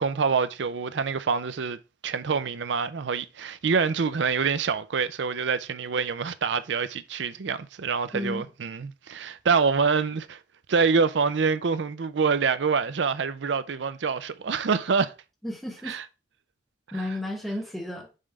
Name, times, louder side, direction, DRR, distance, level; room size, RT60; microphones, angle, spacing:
voice 1, 0.0-1.8 2.0-10.4 10.7-15.1 15.8-16.0 16.9-17.0, right 5 dB, 70° right, 0.5 m, -26 dB
voice 2, 8.1-8.4 15.4-16.0 16.9-18.1, left 1 dB, ahead, 1.2 m, -32 dB
5.5 x 3.3 x 5.0 m
head